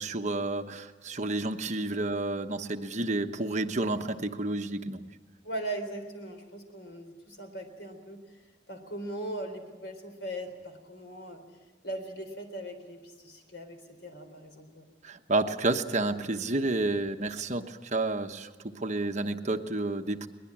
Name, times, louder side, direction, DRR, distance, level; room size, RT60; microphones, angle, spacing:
voice 1, 0.0-5.0 15.0-20.3, right 2 dB, 40° right, 6 dB, 1.1 m, -30 dB
voice 2, 5.4-8.4 8.7-11.4 11.8-14.8, right 1 dB, 90° left, 6 dB, 4.0 m, -39 dB
22.0 x 20.5 x 8.8 m, 1.3 s
head